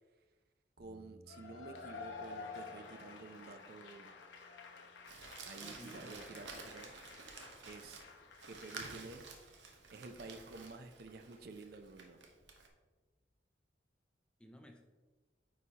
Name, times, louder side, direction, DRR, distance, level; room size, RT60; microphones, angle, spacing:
sound 1, 0.8-13.3, equal, 25° left, 1.0 m, -68 dB
voice 1, 0.8-4.1 5.4-6.9 7.7-8.0 8.5-9.2 9.9-12.2, right 3 dB, 55° right, 8 dB, 0.5 m, -51 dB
Cheering / Applause / Crowd, 1.3-8.9, left 4 dB, 75° left, 0.8 m, -51 dB
Crumpling crinkling, 5.1-12.7, right 4 dB, 80° right, 0.9 m, -51 dB
voice 2, 5.5-6.5 14.4-14.8, left 1 dB, 5° left, 4 dB, 0.4 m, -55 dB
9.4 x 4.1 x 2.8 m, 1.3 s
head